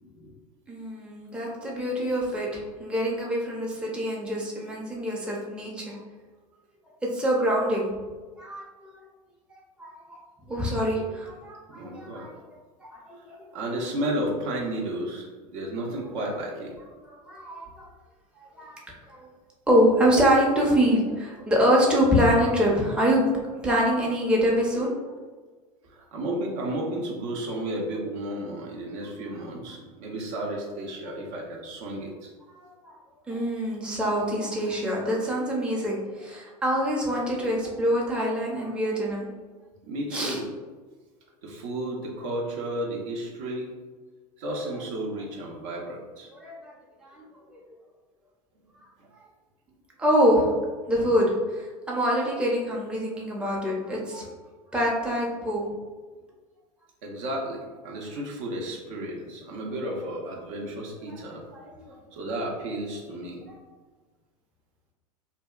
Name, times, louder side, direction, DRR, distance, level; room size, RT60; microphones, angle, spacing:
voice 1, 0.7-6.0 7.0-7.9 8.4-8.9 9.8-10.2 10.5-12.3 12.8-13.4 17.1-17.9 18.6-18.8 19.1-19.3 19.7-24.9 32.6-33.0 33.3-39.3 40.1-40.4 46.3-46.7 47.0-47.2 47.5-47.6 50.0-50.5 50.9-54.3 54.7-55.7 61.0-61.2 61.5-62.0 63.4-63.6, equal, 5° right, -3 dB, 0.5 m, -25 dB
voice 2, 11.7-12.4 13.5-16.8 25.9-32.3 39.9-40.4 41.4-43.7 44.4-46.3 49.0-49.1 57.0-61.4 62.1-63.4, right 1 dB, 60° right, -1 dB, 0.6 m, -33 dB
2.7 x 2.2 x 2.3 m, 1.4 s
hypercardioid pair, 90°, 19 cm